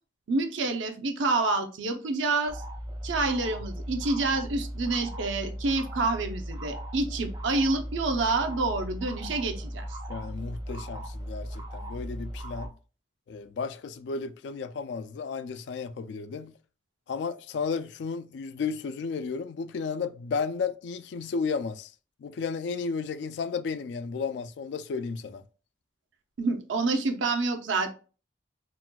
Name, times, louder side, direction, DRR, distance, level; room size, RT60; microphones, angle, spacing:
voice 1, 0.3-2.6 3.0-9.9 26.4-27.9, right 3 dB, 85° right, 0.6 m, -28 dB
sound 1, 2.5-12.7, equal, 25° right, 0.6 m, -37 dB
voice 2, 10.1-12.7 13.3-16.5 17.1-21.9 22.2-25.4, left 5 dB, 65° left, 0.3 m, -33 dB
4.0 x 2.2 x 2.2 m
head